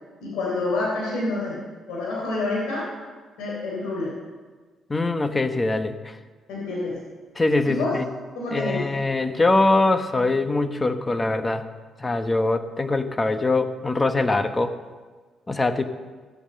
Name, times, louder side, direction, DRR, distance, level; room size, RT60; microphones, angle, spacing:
voice 1, 0.2-1.6 1.9-2.9 3.4-4.1 6.5-7.0 7.7-7.9 8.4-8.8, left 2 dB, 90° left, -5 dB, 3.6 m, -27 dB
voice 2, 4.9-6.2 7.4-8.1 8.5-11.6 12.0-14.7 15.5-15.8, left 2 dB, 20° left, 9 dB, 1.1 m, -23 dB
15.0 x 8.7 x 6.7 m, 1.4 s
cardioid pair, 90°, 0 cm